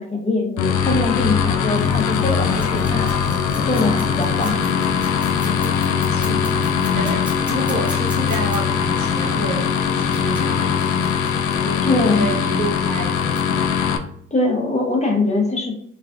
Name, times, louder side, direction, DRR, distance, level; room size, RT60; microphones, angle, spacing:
voice 1, 0.0-3.1 3.5-4.6 11.8-12.3 14.3-15.7, left 2 dB, 20° left, 0 dB, 0.8 m, -22 dB
sound 1, 0.6-14.0, left 7 dB, 75° left, 0.5 m, -21 dB
sound 2, 1.7-13.8, right 2 dB, 25° right, 0.6 m, -36 dB
sound 3, 2.5-8.6 10.1-11.6 12.9-13.0 13.2-13.4, equal, 5° right, 0.9 m, -40 dB
voice 2, 3.7-4.1 5.3-11.2 11.6-13.7, right 1 dB, 70° right, 0 dB, 0.9 m, -30 dB
3.2 x 2.3 x 2.4 m, 0.68 s
cardioid pair, 90°, 30 cm